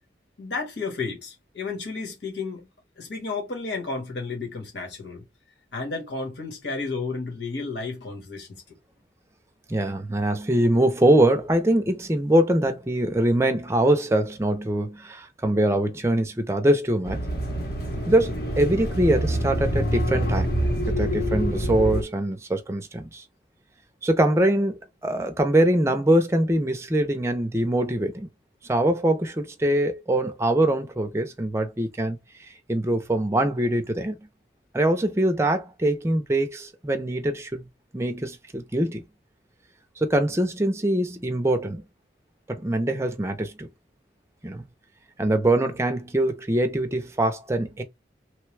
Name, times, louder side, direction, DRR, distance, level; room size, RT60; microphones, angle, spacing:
voice 1, 0.4-2.7 3.0-5.2 5.7-8.7, left 4 dB, 75° left, 1.3 m, -32 dB
voice 2, 9.7-17.2 18.1-20.5 20.9-23.2 24.0-28.3 28.6-32.2 32.7-34.2 34.7-37.7 37.9-39.0 40.0-41.8 42.5-43.7 44.4-44.7 45.2-47.8, right 1 dB, 15° right, 0.5 m, -23 dB
sound 1, 17.0-22.0, equal, 55° left, 0.9 m, -26 dB
3.1 x 2.2 x 3.1 m
head